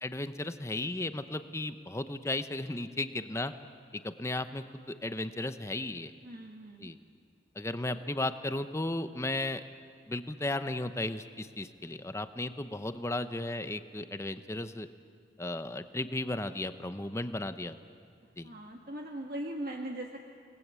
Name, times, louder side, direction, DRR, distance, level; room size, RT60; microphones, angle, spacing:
voice 1, 0.0-3.5 4.0-6.1 6.8-7.0 7.5-9.6 10.1-14.9 15.4-17.8 18.4-18.5, left 2 dB, 15° left, 10 dB, 0.9 m, -35 dB
voice 2, 6.2-6.9 7.9-8.0 18.4-20.2, right 1 dB, 55° right, 2 dB, 1.5 m, -40 dB
28.0 x 19.5 x 8.3 m, 2.2 s
head